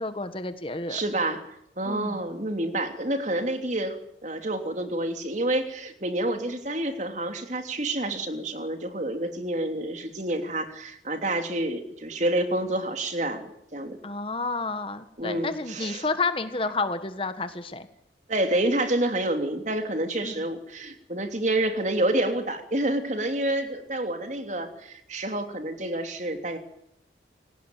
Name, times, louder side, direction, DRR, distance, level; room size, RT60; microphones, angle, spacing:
voice 1, 0.0-1.0 1.8-2.2 14.0-17.9 20.2-20.3, left 3 dB, 30° left, 10 dB, 1.5 m, -30 dB
voice 2, 0.9-1.4 1.8-14.0 15.2-16.1 18.3-26.6, right 1 dB, 40° right, 6 dB, 3.2 m, -28 dB
29.0 x 18.5 x 9.2 m, 0.78 s
head